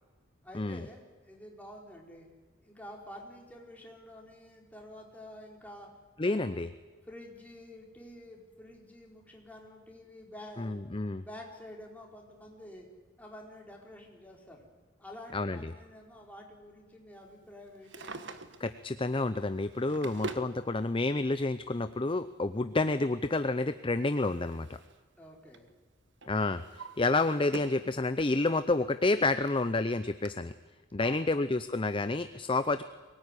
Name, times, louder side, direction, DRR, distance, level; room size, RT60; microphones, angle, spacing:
voice 1, 0.4-2.3 2.6-5.9 6.2-6.6 7.1-10.8 11.2-12.9 13.2-14.7 15.0-18.1 25.2-25.7 31.0-31.3, left 1 dB, 10° left, -1 dB, 4.4 m, -49 dB
voice 2, 6.2-6.7 10.6-11.2 15.3-15.7 18.6-24.8 26.3-30.5 30.9-32.8, left 2 dB, 25° left, 11 dB, 0.6 m, -29 dB
Drawer open or close, 17.7-18.8 19.6-20.5 21.6-21.7 23.5-25.0 25.3-25.7 26.2-27.9 28.3-28.4 29.1-29.2 29.5-29.6 30.2-30.3, right 2 dB, 65° right, 1.5 m, -44 dB
23.0 x 19.0 x 9.9 m, 1.4 s
head